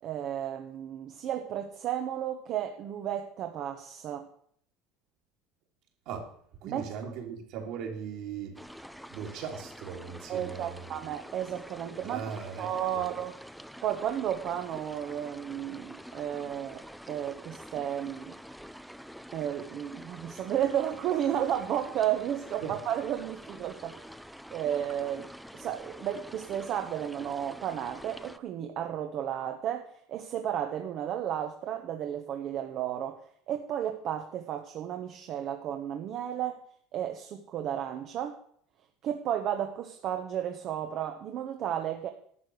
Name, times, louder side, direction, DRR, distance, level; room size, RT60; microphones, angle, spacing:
voice 1, 0.0-4.3 6.6-6.9 10.3-12.2 12.6-13.3 13.8-18.4 19.3-24.2 24.5-36.6 36.9-38.4 39.0-42.1, right 10 dB, 45° right, 5 dB, 1.0 m, -33 dB
voice 2, 6.6-8.6 9.1-11.1 12.0-13.0 22.6-22.7, right 7 dB, 60° right, 1 dB, 3.2 m, -39 dB
sound 1, 8.6-28.4, equal, ahead, 0.5 m, -47 dB
11.5 x 8.4 x 6.4 m, 0.63 s
cardioid pair, 145°, 0 cm